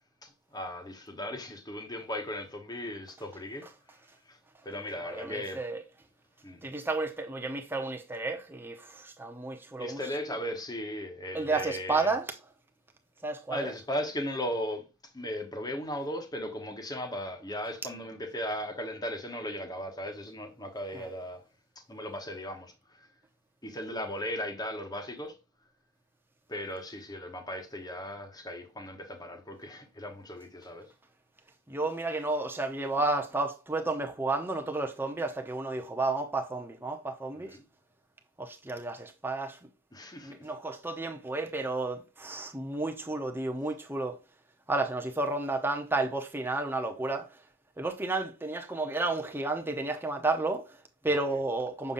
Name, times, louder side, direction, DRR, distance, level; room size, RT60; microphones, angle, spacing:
voice 1, 0.2-3.7 4.3-4.4 4.6-5.6 6.4-6.7 9.8-12.1 13.5-14.8 15.1-21.4 21.9-23.1 23.6-25.3 26.5-30.9 37.3-37.6 39.9-40.4 51.1-51.4, equal, 15° left, 1.1 m, -37 dB
voice 2, 5.0-5.8 6.6-10.1 11.3-12.4 13.2-13.7 20.9-21.1 31.7-37.6 38.4-39.7 40.2-44.2 44.7-47.4 47.8-51.9, right 2 dB, 10° right, 0.8 m, -32 dB
6.9 x 5.5 x 2.6 m
head